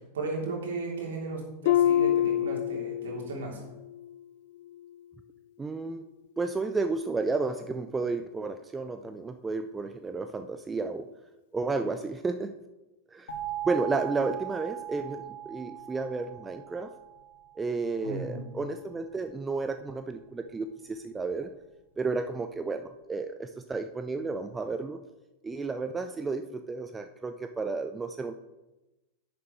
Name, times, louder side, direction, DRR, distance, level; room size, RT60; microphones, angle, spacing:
voice 1, 0.1-3.6 18.0-18.5, right 3 dB, 60° right, -1 dB, 3.1 m, -35 dB
Harp, 1.7-3.4 3.8-4.2 4.7-4.9, left 11 dB, 50° left, 0.3 m, -26 dB
voice 2, 5.6-6.0 6.4-11.1 11.5-12.5 13.1-13.3 13.6-16.9 17.6-21.5 22.0-25.0 25.4-28.3, right 3 dB, 15° right, 9 dB, 0.4 m, -32 dB
sound 1, 13.3-18.0, right 12 dB, 65° left, 1.7 m, -39 dB
10.5 x 9.3 x 3.2 m, 1.0 s
figure-of-eight pair, 90°, 0 cm